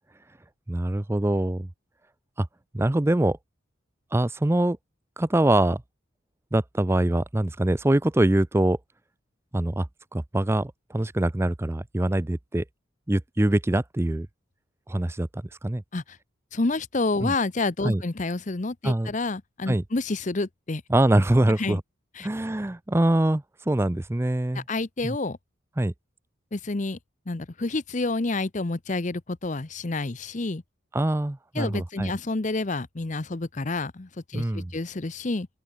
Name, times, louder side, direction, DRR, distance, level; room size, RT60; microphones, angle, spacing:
voice 1, 0.7-1.7 2.4-2.5 2.7-3.4 4.1-4.8 5.2-5.8 6.5-8.8 9.5-9.9 10.1-12.6 13.1-14.3 14.9-15.8 17.2-17.3 17.8-18.0 18.8-19.1 19.7-19.8 20.9-21.8 22.2-24.6 25.0-25.2 25.8-25.9 30.9-32.1 34.3-34.7, right 1 dB, 10° right, 0.4 m, -24 dB
voice 2, 16.5-20.8 21.6-21.8 22.2-22.3 24.5-25.4 26.5-27.0 27.3-30.6 31.5-35.5, left 3 dB, 35° left, 0.7 m, -29 dB
open air
head